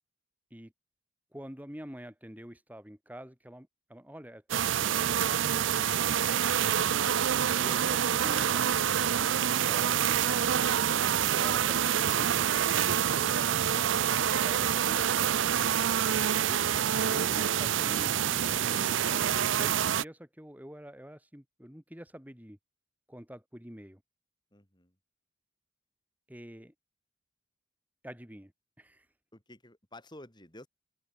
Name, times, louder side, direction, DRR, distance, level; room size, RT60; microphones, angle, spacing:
voice 1, 1.3-5.9 7.5-8.9 9.6-10.7 11.3-12.4 13.6-13.9 14.4-15.1 16.5-22.6 23.1-24.0 26.3-26.7 28.0-28.5 28.8-29.1, equal, 10° right, 3.4 m, -46 dB
sound 1, 4.5-20.0, right 9 dB, 70° right, 0.5 m, -27 dB
voice 2, 13.1-14.1 14.5-14.7 24.5-24.9 29.3-30.7, left 1 dB, 20° left, 6.1 m, -52 dB
head